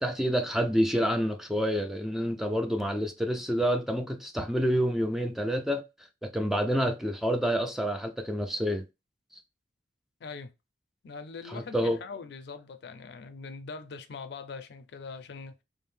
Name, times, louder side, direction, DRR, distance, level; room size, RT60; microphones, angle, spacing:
voice 1, 0.0-5.8 6.2-8.8 11.5-12.0, equal, ahead, 0.3 m, -28 dB
voice 2, 10.2-10.5 11.0-15.6, left 4 dB, 65° left, 0.4 m, -42 dB
2.6 x 2.0 x 3.2 m
head